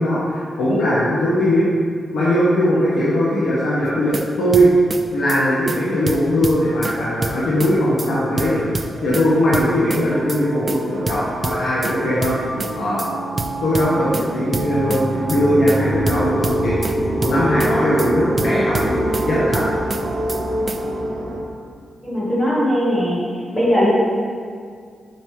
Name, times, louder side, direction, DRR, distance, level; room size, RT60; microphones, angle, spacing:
voice 1, 0.0-1.7 2.1-4.7 5.1-8.6 9.0-12.4 12.7-13.1 13.6-16.8 17.2-19.6, equal, 85° left, -9 dB, 1.2 m, -19 dB
sound 1, 3.9-4.3 4.5-5.0 5.3-5.4 5.7-5.8 6.1-7.0 7.2-7.7 8.0-8.1 8.4-9.3 9.5-10.0 10.3-10.4 10.7-10.8 11.1-11.9 12.2-12.7 13.0-13.1 13.4-14.3 14.5-15.0 15.3-15.4 15.7-15.8 16.1-16.9 17.2-17.7 18.0-18.1 18.4-19.3 19.5-20.0 20.3-20.4 20.7-20.8, right 3 dB, 25° right, 0.3 m, -26 dB
sound 2, 8.9-21.4, right 1 dB, 80° right, 0.8 m, -25 dB
voice 2, 22.0-23.2 23.5-23.9, equal, 15° left, -7 dB, 1.4 m, -19 dB
7.3 x 5.2 x 3.2 m, 2.1 s
wide cardioid pair, 180°, 0 cm